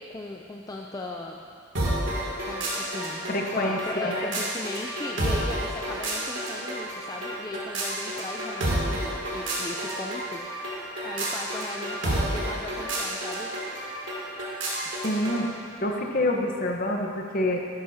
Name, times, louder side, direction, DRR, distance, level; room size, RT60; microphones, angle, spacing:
voice 1, 0.1-1.4 2.5-10.8 11.0-13.5, left 2 dB, 15° left, 0 dB, 0.4 m, -37 dB
sound 1, 1.8-15.5, right 1 dB, 60° right, 2.6 m, -30 dB
voice 2, 3.3-4.3 15.0-15.5 15.8-17.6, left 1 dB, 40° left, 1 dB, 1.0 m, -27 dB
12.5 x 12.0 x 2.8 m, 2.3 s
head